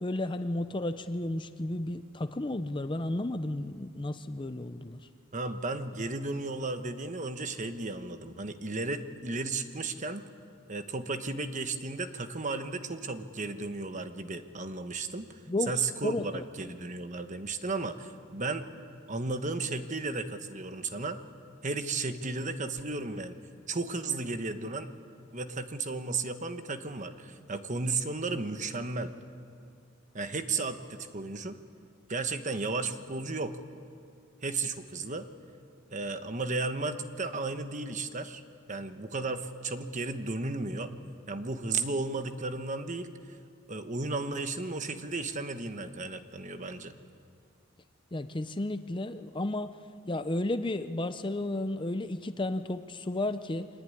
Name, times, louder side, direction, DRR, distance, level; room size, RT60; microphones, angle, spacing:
voice 1, 0.0-5.1 15.5-15.7 16.0-16.4 48.1-49.8 50.1-53.7, left 1 dB, 25° left, 10 dB, 0.6 m, -33 dB
voice 2, 5.3-10.3 10.7-15.4 15.7-18.7 19.1-21.2 21.6-23.3 23.7-24.9 25.3-29.1 30.1-31.6 32.1-33.6 34.4-35.3 35.9-38.4 38.7-40.9 41.3-43.4 43.7-46.9, right 3 dB, 35° right, 9 dB, 1.2 m, -34 dB
24.5 x 19.5 x 9.8 m, 2.4 s
head